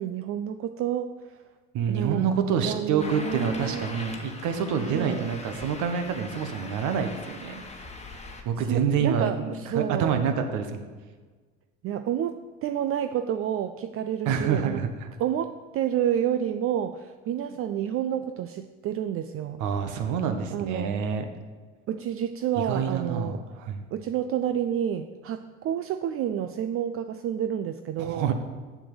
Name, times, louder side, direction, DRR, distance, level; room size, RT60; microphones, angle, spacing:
voice 1, 0.0-1.4 1.9-2.3 2.6-3.8 4.8-5.2 8.6-10.2 11.8-14.8 15.2-19.6 20.5-20.9 21.9-23.4 23.9-28.3, right 10 dB, 40° right, 9 dB, 0.5 m, -29 dB
voice 2, 1.7-7.6 8.4-10.8 14.2-15.1 19.6-21.3 22.6-23.8 28.0-28.3, right 7 dB, 60° right, 7 dB, 1.3 m, -27 dB
sound 1, 3.0-8.4, left 3 dB, 20° left, 1.4 m, -41 dB
7.4 x 6.2 x 6.9 m, 1.4 s
hypercardioid pair, 75°, 34 cm